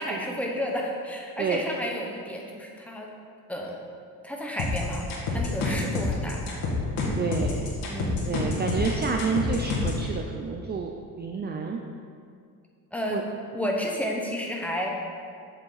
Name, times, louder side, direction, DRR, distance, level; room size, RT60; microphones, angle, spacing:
voice 1, 0.0-3.1 3.5-3.8 4.2-6.4 7.9-8.3 12.9-13.2 13.5-15.1, equal, 5° left, -1 dB, 1.1 m, -31 dB
sound 1, 4.6-10.0, left 3 dB, 70° left, 2.0 m, -27 dB
voice 2, 7.1-7.7 8.3-10.9 11.2-11.8 13.1-13.2, right 5 dB, 30° right, 2 dB, 0.4 m, -29 dB
7.6 x 7.5 x 4.0 m, 2.3 s
cardioid pair, 130°, 36 cm